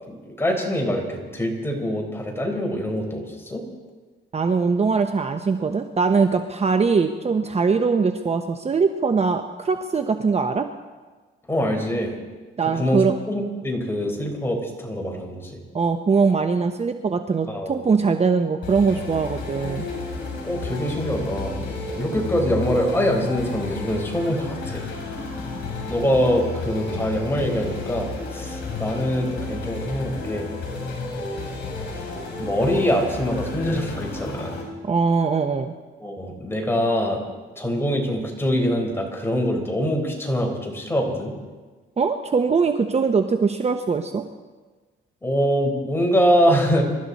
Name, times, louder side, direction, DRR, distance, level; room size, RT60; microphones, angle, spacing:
voice 1, 0.1-3.6 11.5-12.2 12.8-15.6 17.5-17.7 20.4-21.6 21.9-24.8 25.9-30.5 32.4-34.6 36.0-37.2 37.6-41.3 45.2-46.8, equal, 10° left, 1 dB, 4.5 m, -24 dB
voice 2, 4.3-10.7 12.6-13.2 15.7-19.9 34.8-35.7 42.0-44.2, right 5 dB, 30° right, 7 dB, 0.9 m, -21 dB
sound 1, 18.6-34.6, left 3 dB, 60° left, 7.1 m, -32 dB
26.5 x 13.0 x 4.2 m, 1.3 s
cardioid pair, 90°, 20 cm